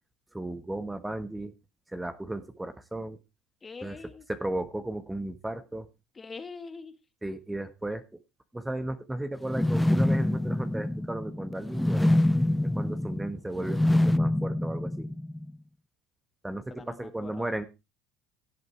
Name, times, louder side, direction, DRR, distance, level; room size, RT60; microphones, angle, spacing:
voice 1, 0.3-1.5 1.9-3.2 3.8-4.0 4.3-5.9 7.2-8.0 8.5-12.1 12.6-15.1 16.4-17.7, right 1 dB, 10° right, 1.4 m, -35 dB
voice 2, 3.6-4.3 6.1-7.0 16.7-17.6, left 4 dB, 25° left, 1.8 m, -43 dB
sound 1, 9.4-15.5, left 1 dB, 5° left, 0.6 m, -26 dB
17.0 x 8.0 x 3.3 m
supercardioid pair, 90°, 0 cm